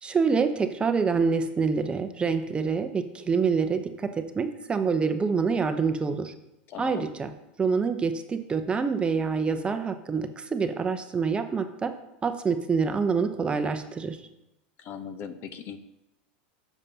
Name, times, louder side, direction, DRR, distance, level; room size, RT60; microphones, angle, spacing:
voice 1, 0.0-4.1 4.3-6.3 6.8-7.3 7.6-11.9 12.2-14.2, right 5 dB, 20° right, 7 dB, 0.7 m, -26 dB
voice 2, 6.7-7.1 14.8-15.8, left 7 dB, 45° left, 10 dB, 0.8 m, -39 dB
12.0 x 7.2 x 2.8 m, 0.88 s
supercardioid pair, 115°, 6 cm